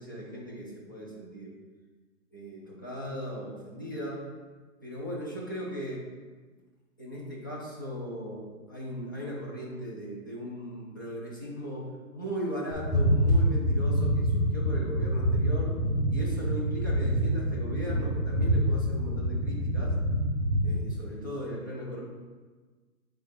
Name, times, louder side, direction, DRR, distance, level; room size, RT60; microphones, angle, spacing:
voice 1, 0.0-1.5 2.3-4.3 4.8-6.0 7.0-15.7 16.1-20.0 20.6-22.0, equal, 15° left, -4 dB, 0.5 m, -38 dB
sound 1, 12.7-20.8, equal, 10° right, 1.0 m, -26 dB
8.3 x 3.8 x 4.2 m, 1.4 s
hypercardioid pair, 165°, 44 cm